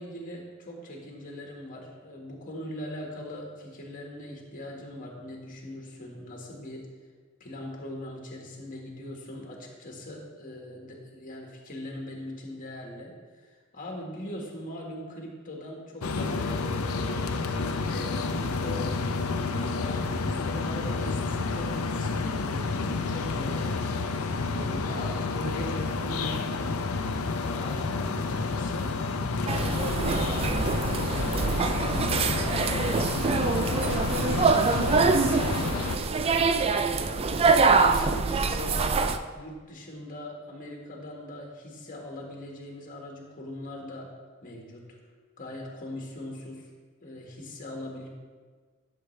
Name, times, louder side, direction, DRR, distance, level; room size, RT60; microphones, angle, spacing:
voice 1, 0.0-6.9 7.4-17.2 17.8-24.0 24.5-26.9 27.4-28.9 29.4-32.7 33.3-36.3 36.9-44.1 44.4-45.0 45.4-46.7 47.0-48.1, left 1 dB, 40° left, -1 dB, 1.7 m, -40 dB
sound 1, 16.0-36.0, left 3 dB, 80° left, 0.6 m, -30 dB
sound 2, 29.5-39.2, right 4 dB, 25° right, 0.3 m, -25 dB
11.0 x 6.8 x 3.3 m, 1.5 s
head